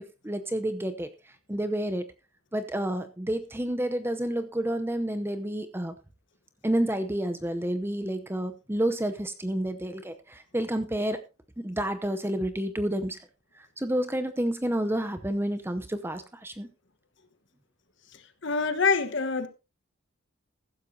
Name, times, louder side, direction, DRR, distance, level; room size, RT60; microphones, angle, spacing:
voice 1, 0.2-1.1 1.5-2.1 2.5-6.0 6.6-11.2 11.6-13.2 13.6-16.7, right 1 dB, 10° right, 0.7 m, -29 dB
voice 2, 18.1-19.5, left 4 dB, 55° left, 1.3 m, -26 dB
15.0 x 12.5 x 2.8 m
head